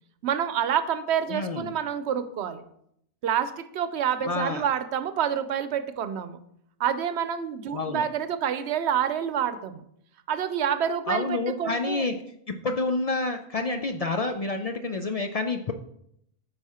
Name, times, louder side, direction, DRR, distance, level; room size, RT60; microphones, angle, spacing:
voice 1, 0.2-2.6 3.2-6.4 6.8-9.8 10.3-12.0, right 8 dB, 85° right, 12 dB, 0.9 m, -28 dB
voice 2, 1.3-1.7 4.2-4.6 7.7-8.0 11.1-12.1 12.5-15.7, left 3 dB, 55° left, 6 dB, 0.4 m, -28 dB
8.4 x 4.8 x 4.2 m, 0.73 s
omnidirectional pair, 1.1 m